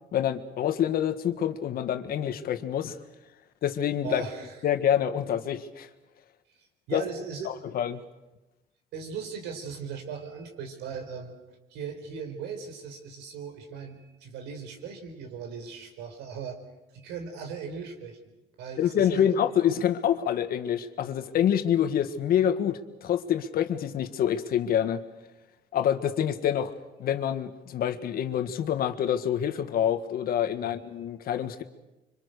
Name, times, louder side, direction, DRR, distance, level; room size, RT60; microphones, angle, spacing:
voice 1, 0.1-2.9 3.6-4.2 4.6-5.9 6.9-7.0 7.7-8.0 18.8-25.0 25.7-26.7 27.0-31.6, left 9 dB, 60° left, 9 dB, 1.7 m, -26 dB
voice 2, 4.0-4.6 6.5-7.5 8.9-16.6 16.9-18.2 18.6-19.3, right 6 dB, 90° right, 5 dB, 4.6 m, -38 dB
26.0 x 25.5 x 6.7 m, 1.0 s
cardioid pair, 110°, 17 cm